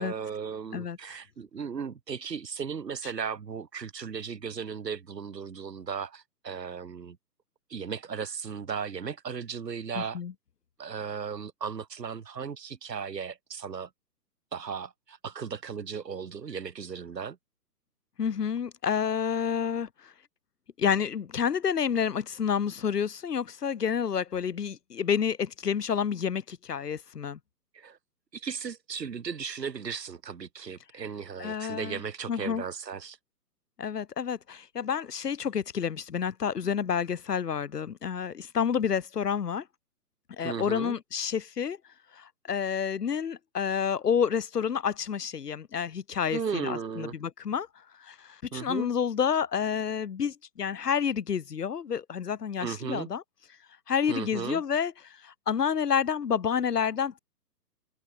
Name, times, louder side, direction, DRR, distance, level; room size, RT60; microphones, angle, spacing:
voice 1, 0.0-7.2 7.7-10.2 10.8-13.9 14.5-17.4 27.7-28.0 28.3-33.2 40.4-40.9 46.3-47.1 48.5-48.9 52.6-53.1 54.1-54.6, right 6 dB, 80° right, 2.6 m, -36 dB
voice 2, 10.0-10.3 18.2-20.1 20.8-27.4 31.4-32.0 32.3-32.6 33.8-39.7 40.3-41.8 42.1-47.7 48.0-53.2 53.9-57.2, left 7 dB, 70° left, 3.5 m, -29 dB
hypercardioid pair, 140°, 49 cm